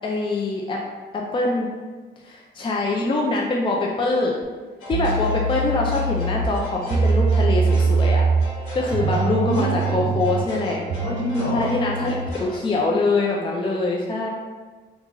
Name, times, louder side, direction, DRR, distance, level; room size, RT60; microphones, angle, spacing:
voice 1, 0.0-0.8 1.1-1.7 2.2-4.4 4.9-8.3 8.7-10.8 11.5-12.1 12.4-14.3, left 2 dB, 25° left, -1 dB, 0.4 m, -24 dB
sound 1, 4.8-12.6, left 1 dB, 90° left, 1.1 m, -38 dB
sound 2, 4.9-12.4, right 4 dB, 50° right, 0.4 m, -23 dB
voice 2, 9.0-10.1 11.0-11.8, left 1 dB, 70° left, -6 dB, 1.3 m, -26 dB
2.9 x 2.4 x 3.6 m, 1.4 s
cardioid pair, 90°, 20 cm